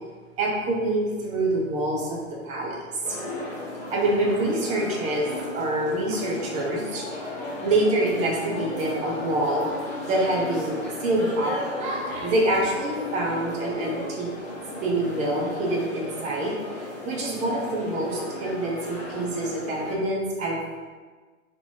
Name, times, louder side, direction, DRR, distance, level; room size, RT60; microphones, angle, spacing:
voice 1, 0.4-3.2 3.9-7.2 7.6-9.7 10.1-14.3 14.8-16.6 17.0-20.9, right 1 dB, 20° right, -3 dB, 0.7 m, -26 dB
sound 1, 3.0-19.9, left 1 dB, 20° left, 1.4 m, -35 dB
3.5 x 3.0 x 4.0 m, 1.4 s
figure-of-eight pair, 110°, 39 cm